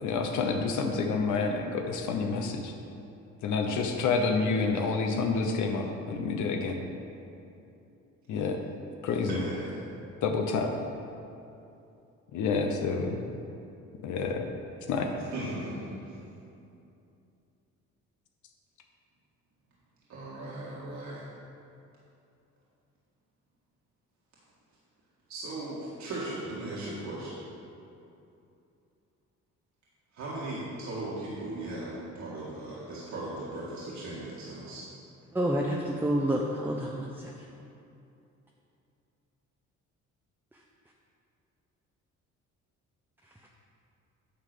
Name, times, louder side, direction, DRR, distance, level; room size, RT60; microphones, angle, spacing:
voice 1, 0.0-2.7 3.4-6.8 8.3-8.6 9.0-9.4 10.2-10.7 12.3-13.2 14.0-14.5 14.9-15.1, left 4 dB, 80° left, 3 dB, 0.8 m, -28 dB
voice 2, 9.3-9.8 15.3-16.2 20.1-21.2 25.3-27.4 30.1-34.9, right 2 dB, 65° right, -8 dB, 1.8 m, -37 dB
voice 3, 35.3-37.3, right 1 dB, 5° right, -1 dB, 0.7 m, -28 dB
9.7 x 3.8 x 6.7 m, 2.7 s
cardioid pair, 90°, 30 cm